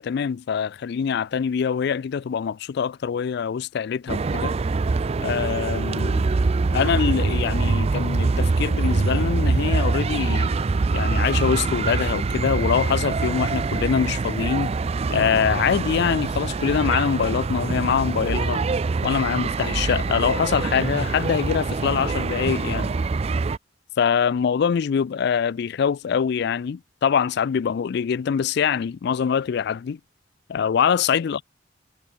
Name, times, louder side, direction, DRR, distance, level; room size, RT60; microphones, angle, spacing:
voice 1, 0.0-4.5 5.2-6.2 6.7-10.5 10.9-14.7 15.1-18.6 19.0-22.9 24.0-30.0 30.5-31.4, left 7 dB, 60° left, 0.4 m, -24 dB
sound 1, 4.1-23.6, right 3 dB, 35° right, 0.4 m, -24 dB
head